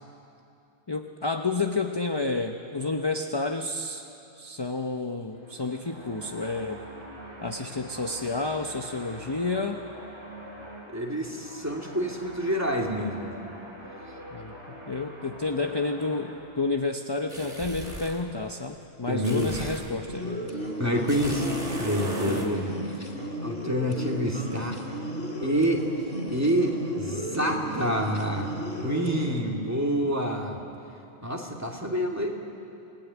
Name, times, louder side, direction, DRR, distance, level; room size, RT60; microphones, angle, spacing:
voice 1, 0.9-4.1 4.4-6.8 7.4-9.8 14.3-20.5 22.3-22.5, left 3 dB, 25° left, 5 dB, 0.9 m, -30 dB
sound 1, 5.2-16.3, right 1 dB, 80° right, 6.1 m, -44 dB
voice 2, 10.9-13.3 19.1-19.7 20.8-21.5 21.8-22.7 23.0-23.1 23.4-24.8 25.4-25.9 26.3-28.5 28.8-30.6 31.2-32.3, equal, 15° right, 0 dB, 2.7 m, -27 dB
sound 2, 17.3-18.2 19.2-20.0 21.1-22.5, equal, 35° right, 3.1 m, -36 dB
sound 3, 20.1-29.4, right 1 dB, 60° left, 3.5 m, -34 dB
28.0 x 19.5 x 9.6 m, 2.7 s
omnidirectional pair, 1.2 m